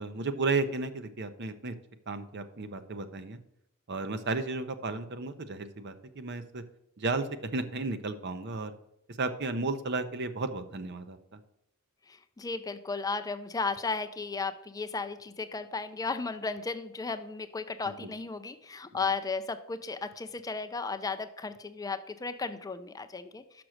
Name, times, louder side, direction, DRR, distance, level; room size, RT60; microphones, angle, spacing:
voice 1, 0.0-1.7 2.1-3.4 3.9-6.6 7.0-8.7 9.1-11.4 17.8-18.1, right 3 dB, 55° right, 10 dB, 0.7 m, -33 dB
voice 2, 12.1-23.6, left 4 dB, 15° left, 9 dB, 0.4 m, -35 dB
6.0 x 6.0 x 6.4 m, 0.81 s
head